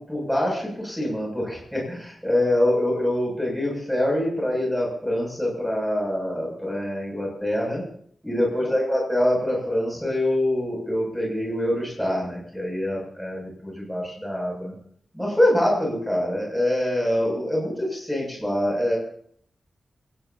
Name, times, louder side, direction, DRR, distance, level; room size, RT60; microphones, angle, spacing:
voice 1, 0.0-7.8 8.2-14.7 15.1-19.0, left 1 dB, ahead, -3 dB, 7.3 m, -25 dB
26.5 x 16.5 x 2.9 m, 0.62 s
wide cardioid pair, 165°, 0 cm